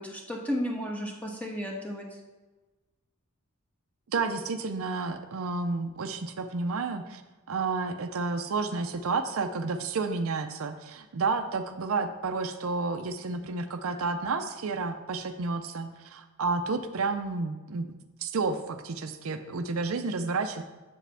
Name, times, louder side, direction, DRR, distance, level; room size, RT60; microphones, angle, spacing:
voice 1, 0.0-2.1, equal, 5° left, -1 dB, 1.2 m, -33 dB
voice 2, 4.1-7.2 7.5-17.9 18.2-20.6, right 4 dB, 65° right, 8 dB, 0.5 m, -31 dB
7.7 x 7.4 x 3.4 m, 1.2 s
head